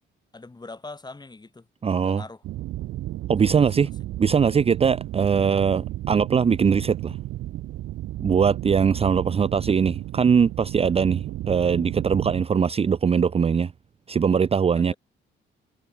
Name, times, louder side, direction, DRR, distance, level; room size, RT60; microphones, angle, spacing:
voice 1, 0.3-1.7 2.0-2.4 3.5-3.9 14.7-15.0, left 3 dB, 20° left, 7.8 m, -42 dB
voice 2, 1.8-2.2 3.3-3.9 4.2-7.2 8.2-13.7 14.1-14.9, right 6 dB, 30° right, 0.6 m, -21 dB
sound 1, 2.4-12.4, right 15 dB, 85° right, 1.4 m, -33 dB
cardioid pair, 90°, 20 cm